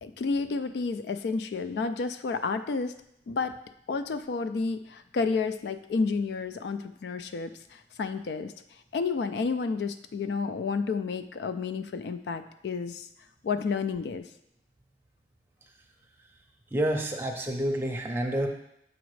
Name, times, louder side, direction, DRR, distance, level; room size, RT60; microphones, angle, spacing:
voice 1, 0.0-3.0 3.3-3.6 3.9-8.5 8.9-13.1 13.4-14.2, left 4 dB, 70° left, 10 dB, 0.3 m, -30 dB
voice 2, 16.7-18.5, right 1 dB, 15° right, 1 dB, 0.6 m, -28 dB
7.0 x 5.0 x 3.1 m, 0.77 s
head